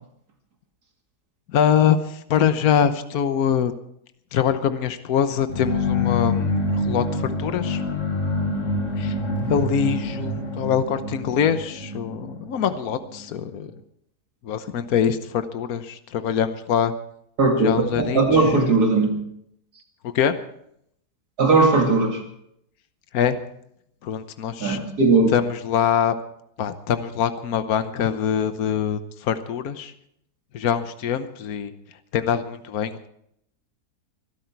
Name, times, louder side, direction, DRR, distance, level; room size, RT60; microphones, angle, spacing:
voice 1, 1.5-3.7 4.3-7.8 9.0-9.1 9.5-13.7 14.4-16.9 17.6-18.4 20.1-20.3 23.1-23.4 24.0-24.8 25.3-26.1 26.6-29.9 30.5-31.7 32.1-33.1, left 8 dB, 70° left, 10 dB, 1.4 m, -23 dB
sound 1, 5.5-13.3, left 2 dB, 50° left, 2.2 m, -26 dB
voice 2, 17.4-19.2 21.4-22.2 24.6-25.3, right 3 dB, 75° right, 2 dB, 3.0 m, -18 dB
23.0 x 12.0 x 4.6 m, 0.73 s
omnidirectional pair, 1.7 m